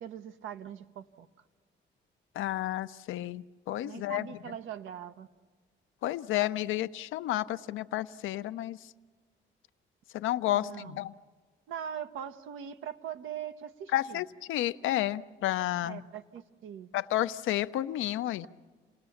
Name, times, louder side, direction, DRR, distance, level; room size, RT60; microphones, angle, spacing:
voice 1, 0.0-1.3 3.8-5.3 10.5-11.0 11.7-14.2 15.8-16.9, right 9 dB, 80° right, 10 dB, 0.9 m, -41 dB
voice 2, 2.3-4.3 6.0-8.9 10.1-11.1 13.9-16.0 16.9-18.5, left 14 dB, 85° left, 12 dB, 0.6 m, -31 dB
28.5 x 18.5 x 7.1 m, 1.4 s
cardioid pair, 90°, 20 cm